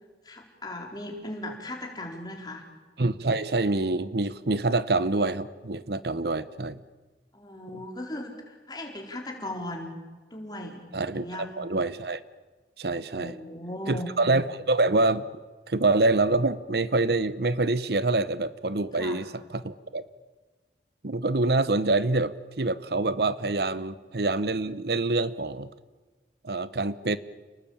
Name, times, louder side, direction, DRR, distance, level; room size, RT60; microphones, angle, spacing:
voice 1, 0.2-2.6 7.3-10.0 10.3-10.8 11.1-11.5 13.1-14.1 18.9-19.2, left 1 dB, 25° left, 2 dB, 4.4 m, -37 dB
voice 2, 3.0-6.8 7.7-7.8 10.9-12.2 12.8-13.3 13.9-15.2 15.7-20.1 21.0-25.7 26.4-27.2, right 2 dB, 65° right, 15 dB, 0.9 m, -26 dB
30.0 x 20.0 x 8.8 m, 1.3 s
head